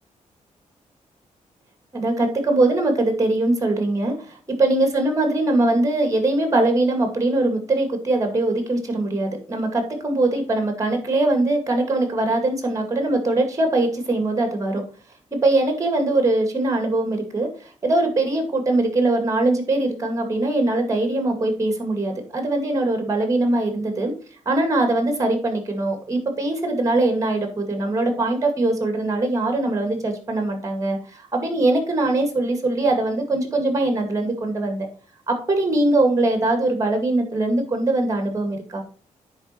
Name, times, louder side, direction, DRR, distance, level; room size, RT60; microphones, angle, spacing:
voice 1, 1.9-14.8 15.3-17.5 17.8-24.1 24.5-34.9 35.3-38.8, right 2 dB, 25° right, 5 dB, 2.1 m, -22 dB
9.7 x 4.2 x 4.4 m, 0.41 s
cardioid pair, 110°, 13 cm